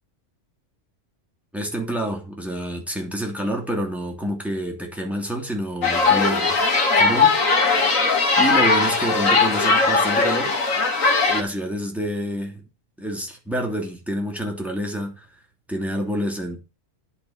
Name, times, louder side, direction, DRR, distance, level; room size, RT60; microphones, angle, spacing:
voice 1, 1.5-6.6 6.9-7.4 8.4-10.5 11.3-12.6 13.0-15.2 15.7-16.6, right 1 dB, ahead, 2.8 m, -27 dB
sound 1, 5.8-11.4, left 4 dB, 85° left, 2.4 m, -19 dB
10.5 x 5.8 x 7.8 m
omnidirectional pair, 1.3 m